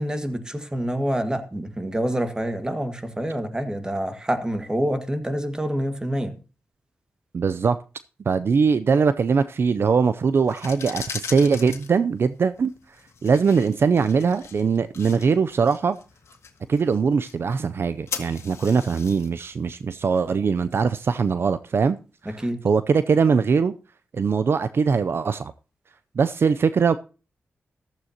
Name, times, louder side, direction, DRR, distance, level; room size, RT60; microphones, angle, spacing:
voice 1, 0.0-6.4 22.3-22.6, equal, 15° right, 1.8 m, -27 dB
voice 2, 7.3-7.8 8.3-12.7 13.2-16.0 16.7-22.0 22.2-23.7 24.1-25.5 26.2-27.0, right 5 dB, 55° right, 0.5 m, -21 dB
sound 1, 10.4-21.2, left 6 dB, 80° left, 1.8 m, -40 dB
14.5 x 12.5 x 2.9 m
cardioid pair, 90°, 5 cm